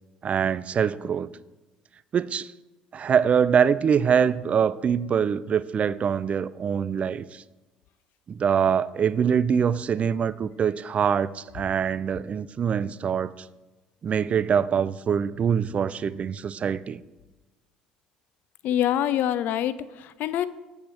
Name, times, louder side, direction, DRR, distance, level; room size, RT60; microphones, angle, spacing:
voice 1, 0.2-1.3 2.1-2.5 2.9-7.4 8.3-13.3 14.0-17.0, right 7 dB, 40° right, 18 dB, 0.3 m, -24 dB
voice 2, 18.6-20.5, left 11 dB, 65° left, 15 dB, 0.3 m, -25 dB
7.8 x 6.9 x 3.4 m, 1.1 s
hypercardioid pair, 65°, 3 cm